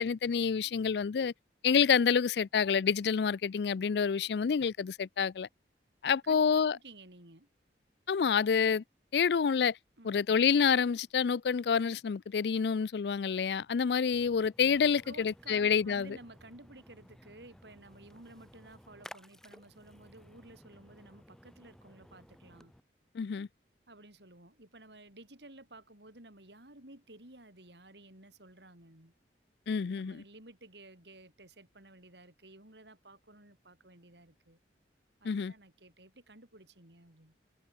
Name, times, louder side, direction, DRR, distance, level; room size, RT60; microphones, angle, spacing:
voice 1, 0.0-1.3 1.6-5.5 6.0-6.8 8.1-8.8 9.1-9.8 10.0-16.2 23.1-23.5 29.7-30.2 35.2-35.5, left 6 dB, 65° left, 0.4 m, -28 dB
voice 2, 6.7-7.5 10.0-10.1 15.0-22.7 23.9-29.1 29.9-34.6 35.2-37.4, right 2 dB, 75° right, 5.9 m, -54 dB
Splash splatter, 14.1-22.8, equal, 5° left, 1.5 m, -56 dB
head